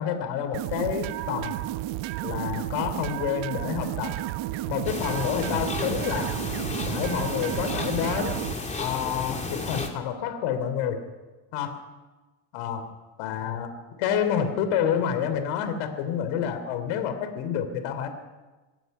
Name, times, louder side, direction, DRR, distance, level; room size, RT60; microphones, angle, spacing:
voice 1, 0.0-1.5 2.2-4.1 4.7-6.3 6.8-8.4 8.8-11.0 11.5-11.8 12.5-12.9 13.2-13.7 14.0-18.1, left 8 dB, 80° left, 8 dB, 3.6 m, -28 dB
sound 1, 0.5-8.5, right 15 dB, 70° right, 1.1 m, -32 dB
sound 2, 4.9-9.9, left 3 dB, 15° left, 3.1 m, -33 dB
26.0 x 18.0 x 5.7 m, 1.2 s
cardioid pair, 120°, 49 cm